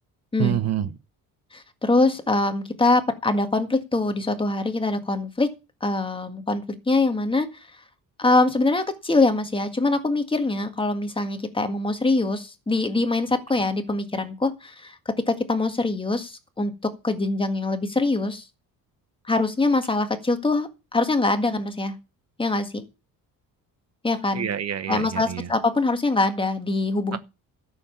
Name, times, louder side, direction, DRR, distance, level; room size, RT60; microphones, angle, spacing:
voice 1, 0.4-0.9 24.3-25.5 27.1-27.2, right 10 dB, 50° right, 1.0 m, -27 dB
voice 2, 1.5-5.5 5.8-7.5 8.2-18.4 19.3-21.9 22.4-22.8 24.0-24.5 24.9-27.2, left 2 dB, 15° left, 1.8 m, -23 dB
13.0 x 7.0 x 7.2 m
cardioid pair, 130°, 34 cm